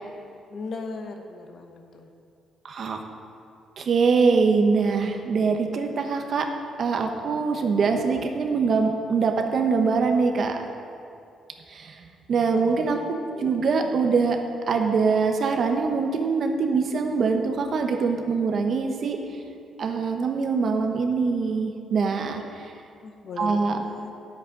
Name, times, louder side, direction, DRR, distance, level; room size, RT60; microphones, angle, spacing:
voice 1, 0.5-2.1 12.5-13.5 13.8-13.9 23.0-24.1, left 4 dB, 60° left, 5 dB, 1.2 m, -38 dB
voice 2, 2.6-3.0 3.8-6.5 6.8-10.6 11.7-13.0 13.4-14.4 14.7-19.2 19.8-22.4 23.4-23.8, right 4 dB, 55° right, 4 dB, 1.1 m, -23 dB
9.8 x 8.2 x 5.2 m, 2.6 s
cardioid pair, 90°, 0 cm